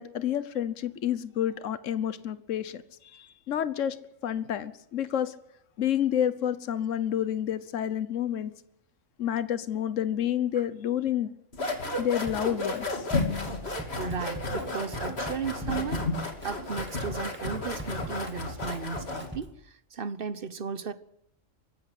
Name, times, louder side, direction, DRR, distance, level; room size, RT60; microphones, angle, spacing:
voice 1, 0.0-4.0 4.2-5.3 5.8-8.5 9.2-11.3 12.0-13.0, left 10 dB, 70° left, 1.3 m, -29 dB
sound 1, 11.5-19.4, left 2 dB, 50° left, 3.1 m, -32 dB
Drum kit, 12.3-12.8 13.1-19.6, right 1 dB, 10° right, 2.1 m, -42 dB
voice 2, 14.0-16.1 16.4-20.9, right 5 dB, 45° right, 1.2 m, -35 dB
23.5 x 14.5 x 8.3 m
omnidirectional pair, 1.4 m